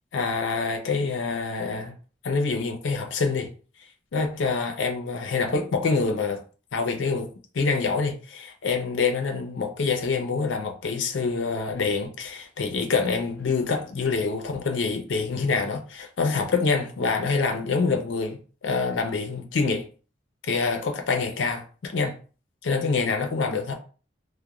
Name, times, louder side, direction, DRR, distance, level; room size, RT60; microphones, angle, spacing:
voice 1, 0.1-1.9 2.2-3.5 4.1-6.4 6.7-7.3 7.5-19.9 20.4-22.1 22.6-23.7, left 4 dB, 85° left, 0.5 m, -26 dB
2.9 x 2.1 x 2.3 m
head